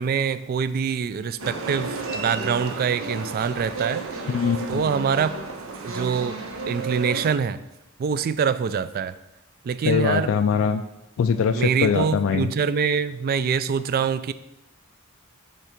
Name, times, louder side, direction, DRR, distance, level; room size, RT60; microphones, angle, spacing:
voice 1, 0.0-4.1 4.7-5.4 5.8-6.4 6.7-7.6 8.0-9.1 9.6-10.3 11.5-14.3, right 6 dB, 45° right, 14 dB, 0.3 m, -24 dB
sound 1, 1.4-7.3, right 3 dB, 90° right, 0.8 m, -32 dB
voice 2, 4.3-4.9 9.8-10.8 11.2-12.5, left 6 dB, 75° left, 8 dB, 0.3 m, -22 dB
5.9 x 3.6 x 5.8 m, 0.90 s
head